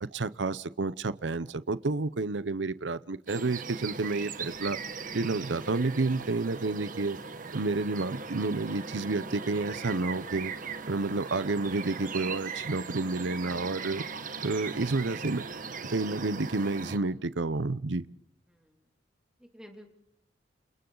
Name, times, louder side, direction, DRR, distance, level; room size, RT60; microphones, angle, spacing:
voice 1, 0.0-4.8 5.1-7.2 7.5-10.5 10.9-14.0 14.4-15.5 15.8-18.0, right 3 dB, 80° right, 0.8 m, -30 dB
sound 1, 3.3-17.0, right 5 dB, 45° right, 1.5 m, -39 dB
voice 2, 18.5-18.9 19.4-19.9, equal, 5° right, 2.8 m, -52 dB
29.0 x 28.5 x 4.0 m
head